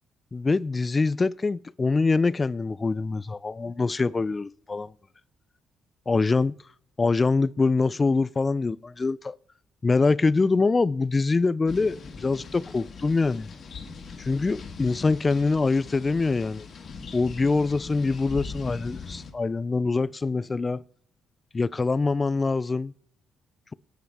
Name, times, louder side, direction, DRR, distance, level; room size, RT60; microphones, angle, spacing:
voice 1, 0.3-4.9 6.1-6.5 7.0-9.4 9.8-13.5 14.2-16.7 17.1-20.8 21.5-22.9, left 3 dB, 25° left, 0.4 m, -24 dB
sound 1, 11.7-19.3, left 5 dB, 50° left, 2.3 m, -40 dB
24.0 x 9.5 x 3.5 m
cardioid pair, 90°, 0 cm